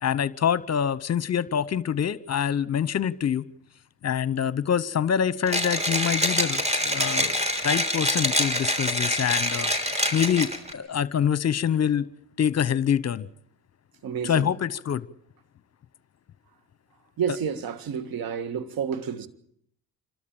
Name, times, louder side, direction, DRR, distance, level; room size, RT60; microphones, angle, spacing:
voice 1, 0.0-3.4 4.0-7.4 7.6-12.1 12.4-13.3 14.2-15.1, left 8 dB, 40° left, 1.0 m, -25 dB
Mechanisms, 5.5-10.7, equal, 15° right, 3.6 m, -25 dB
voice 2, 14.0-14.5 17.2-19.3, right 7 dB, 60° right, 1.8 m, -30 dB
27.0 x 13.0 x 8.9 m
supercardioid pair, 70°, 40 cm